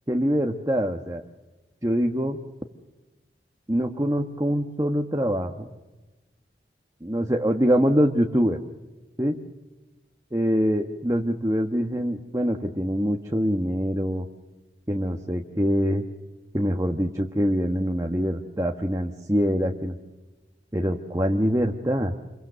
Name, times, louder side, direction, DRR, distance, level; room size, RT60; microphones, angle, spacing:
voice 1, 0.1-1.2 1.8-2.4 3.7-5.7 7.0-8.6 9.2-9.4 10.3-14.3 14.9-16.0 16.5-20.0 20.7-22.1, equal, 20° right, 2 dB, 1.3 m, -24 dB
28.0 x 23.5 x 6.8 m, 1.1 s
head